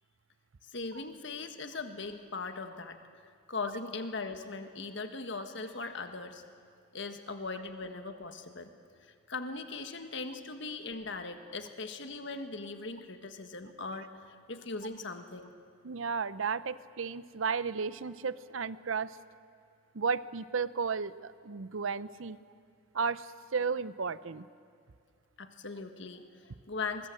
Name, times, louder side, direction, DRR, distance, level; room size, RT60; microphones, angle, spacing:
voice 1, 0.6-3.0 3.5-6.4 6.9-8.7 9.0-15.5 25.4-27.1, left 3 dB, 60° left, 7 dB, 1.6 m, -39 dB
voice 2, 15.8-19.2 19.9-22.4 22.9-24.5, right 5 dB, 70° right, 16 dB, 0.6 m, -33 dB
23.0 x 21.5 x 7.7 m, 2.3 s
head